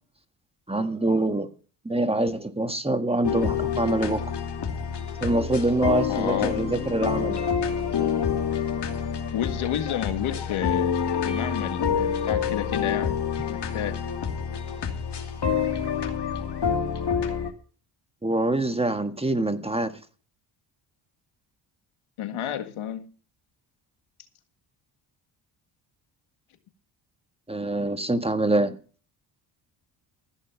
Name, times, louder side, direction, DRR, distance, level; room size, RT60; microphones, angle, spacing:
voice 1, 0.7-1.5 1.8-4.3 5.2-7.4 18.2-20.0 27.5-28.8, right 2 dB, 10° right, 1.4 m, -25 dB
sound 1, 3.2-17.5, left 7 dB, 55° left, 2.7 m, -27 dB
voice 2, 6.1-6.6 9.3-14.0 22.2-23.0, left 10 dB, 70° left, 1.8 m, -31 dB
15.0 x 6.5 x 5.8 m
supercardioid pair, 65°, 50 cm